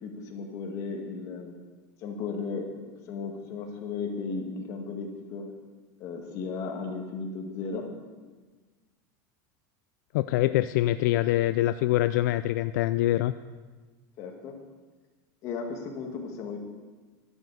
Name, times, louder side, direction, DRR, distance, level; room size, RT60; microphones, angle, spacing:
voice 1, 0.0-1.5 2.0-5.5 6.0-7.9 14.2-14.5 15.4-16.6, left 4 dB, 35° left, 2 dB, 1.7 m, -35 dB
voice 2, 10.1-13.3, left 14 dB, 70° left, 13 dB, 0.3 m, -24 dB
12.0 x 7.3 x 8.1 m, 1.3 s
supercardioid pair, 180°, 10 cm